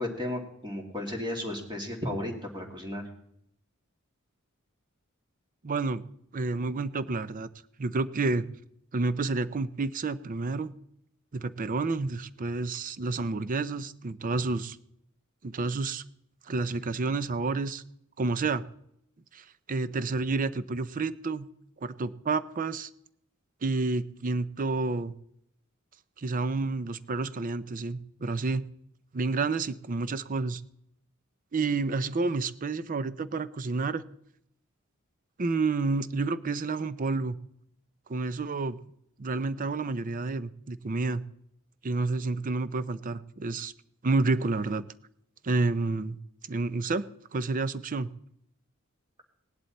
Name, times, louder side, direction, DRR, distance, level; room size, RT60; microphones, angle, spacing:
voice 1, 0.0-3.0, left 1 dB, 20° right, 1 dB, 2.5 m, -34 dB
voice 2, 5.6-6.0 6.3-7.5 7.8-8.5 8.9-10.7 11.3-14.8 15.4-16.0 16.5-17.8 18.2-18.7 19.3-21.5 21.8-22.9 23.6-25.1 26.2-28.7 29.1-30.6 31.5-34.0 35.4-37.4 38.1-38.8 39.2-41.2 41.8-43.7 44.0-44.8 45.4-46.2 46.5-47.1 47.3-48.1, right 3 dB, 40° right, 15 dB, 0.5 m, -29 dB
17.5 x 11.0 x 4.2 m, 0.74 s
head